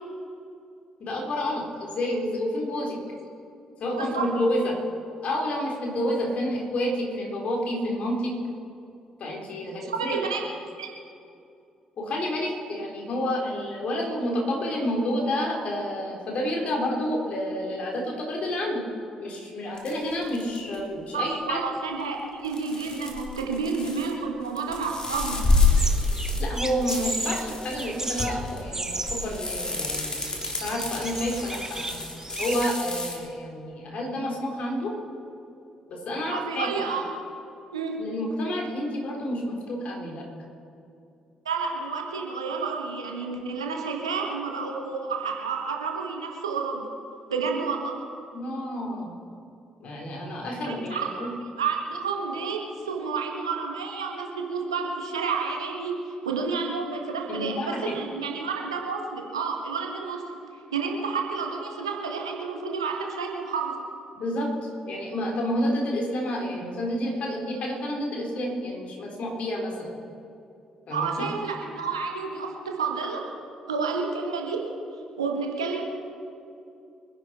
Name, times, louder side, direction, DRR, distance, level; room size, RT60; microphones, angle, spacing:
voice 1, 1.0-3.0 3.8-4.7 5.2-8.3 9.2-10.2 12.0-18.8 19.2-21.7 26.4-30.2 30.5-31.9 32.4-34.9 35.9-36.7 38.0-40.2 48.3-49.1 49.8-51.3 57.3-57.9 64.2-69.9 70.9-71.1, left 1 dB, 50° left, 0 dB, 3.8 m, -29 dB
voice 2, 3.9-4.2 9.9-10.4 10.8-10.9 21.1-25.4 36.3-37.0 37.7-38.0 41.4-46.8 47.3-47.9 50.6-51.3 51.6-60.2 60.7-63.8 70.9-73.2 73.7-74.6 75.2-75.8, right 5 dB, 80° right, 1 dB, 1.5 m, -30 dB
sound 1, 19.8-20.8 22.4-24.1 24.4-33.2, left 3 dB, 30° left, 3.3 m, -28 dB
sound 2, 25.8-32.7, right 2 dB, 20° right, 0.9 m, -35 dB
25.0 x 11.0 x 4.4 m, 2.6 s
figure-of-eight pair, 45°, 3 cm